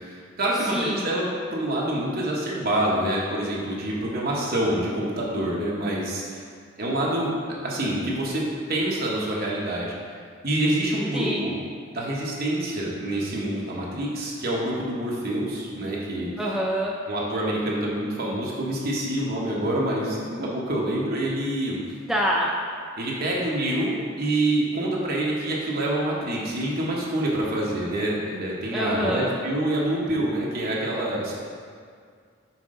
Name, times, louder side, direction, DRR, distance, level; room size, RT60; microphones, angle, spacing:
voice 1, 0.0-6.4 6.8-7.4 7.6-9.9 10.4-11.6 11.9-16.3 17.1-21.8 23.0-31.4, right 1 dB, 50° right, -4 dB, 1.1 m, -26 dB
voice 2, 0.7-1.1 11.1-11.4 16.4-16.9 22.1-22.5 28.7-29.3, equal, ahead, -4 dB, 0.4 m, -25 dB
5.9 x 4.5 x 3.8 m, 2.1 s
head